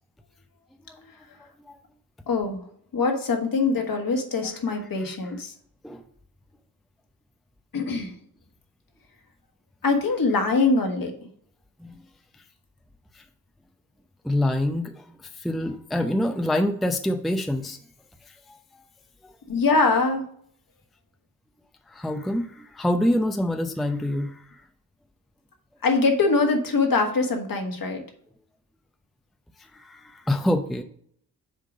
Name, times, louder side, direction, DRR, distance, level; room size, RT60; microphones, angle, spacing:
voice 1, 1.4-1.8 4.4-4.5 5.8-6.0 11.8-11.9 13.1-13.2 14.2-15.0 15.4-17.8 18.5-18.6 19.2-19.3 21.9-24.6 29.7-30.8, left 1 dB, ahead, 6 dB, 0.6 m, -26 dB
voice 2, 2.3-2.6 2.9-5.5 7.7-8.1 9.8-11.1 19.5-20.2 25.8-28.0, left 3 dB, 45° left, 3 dB, 1.6 m, -23 dB
6.7 x 3.7 x 5.0 m, 0.64 s
hypercardioid pair, 45°, 45 cm